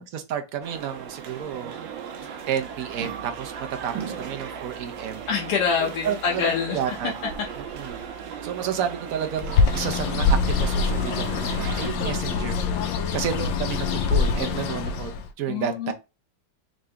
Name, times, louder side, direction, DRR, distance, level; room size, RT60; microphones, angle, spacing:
voice 1, 0.1-1.7 2.5-5.2 5.8-7.1 7.6-8.0 8.4-12.6 13.1-15.1 15.4-15.9, right 9 dB, 65° right, 0.9 m, -31 dB
sound 1, 0.6-11.9, right 7 dB, 85° right, 1.5 m, -37 dB
voice 2, 5.3-7.0 15.5-15.9, left 6 dB, 65° left, 1.3 m, -25 dB
Bird, 9.4-15.3, left 4 dB, 85° left, 1.3 m, -24 dB
3.8 x 3.5 x 3.3 m
omnidirectional pair, 2.0 m